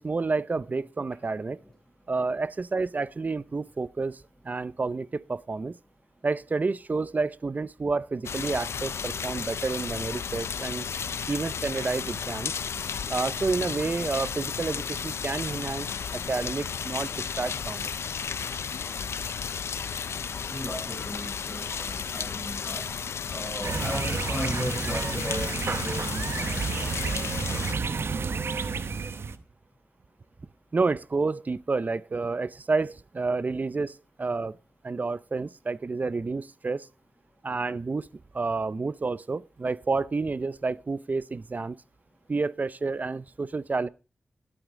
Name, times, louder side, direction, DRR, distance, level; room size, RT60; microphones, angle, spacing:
voice 1, 0.0-1.6 2.1-5.8 6.2-10.9 11.3-12.5 13.1-15.9 16.1-17.9 30.7-34.6 34.8-36.9 37.4-38.1 38.3-41.8 42.3-43.9, right 3 dB, 40° right, 0.5 m, -29 dB
sound 1, 8.2-27.7, left 6 dB, 85° left, 0.5 m, -33 dB
voice 2, 20.5-22.9 23.3-27.6, equal, 10° left, 7.6 m, -36 dB
sound 2, 23.6-29.4, right 5 dB, 65° right, 0.9 m, -30 dB
13.0 x 11.5 x 3.7 m
wide cardioid pair, 90°, 4 cm